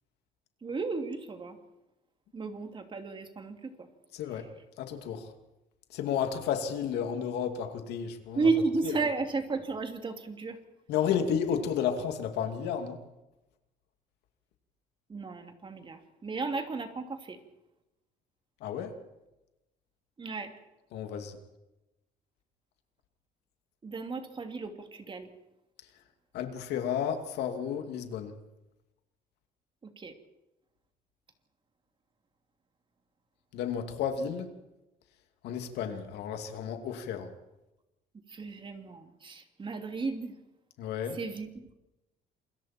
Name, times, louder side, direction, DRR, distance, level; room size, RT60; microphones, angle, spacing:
voice 1, 0.6-1.6 2.3-3.9 8.3-10.6 15.1-17.4 20.2-20.5 23.8-25.3 29.8-30.1 38.3-40.4 41.1-41.5, right 4 dB, 30° right, 5 dB, 2.9 m, -33 dB
voice 2, 4.1-4.5 4.8-5.3 5.9-8.5 10.9-13.0 18.6-18.9 20.9-21.4 26.3-28.3 33.5-34.5 35.4-37.3 40.8-41.2, left 8 dB, 80° left, 6 dB, 2.7 m, -32 dB
28.0 x 22.5 x 4.5 m, 0.96 s
cardioid pair, 110°, 17 cm